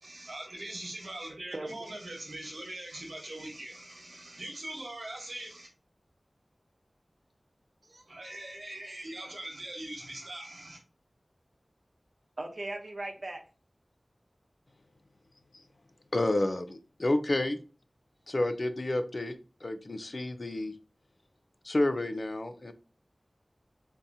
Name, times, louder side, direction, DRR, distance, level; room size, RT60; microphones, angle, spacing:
voice 1, 0.0-5.7 8.1-10.8, right 1 dB, 80° right, 1.2 m, -42 dB
voice 2, 1.5-1.9 7.8-8.4 12.4-13.4, right 2 dB, 60° right, 0.8 m, -39 dB
voice 3, 16.1-17.6 18.3-20.7 21.6-22.7, left 1 dB, 55° left, 0.4 m, -30 dB
3.6 x 2.7 x 2.7 m
wide cardioid pair, 60°, 0 cm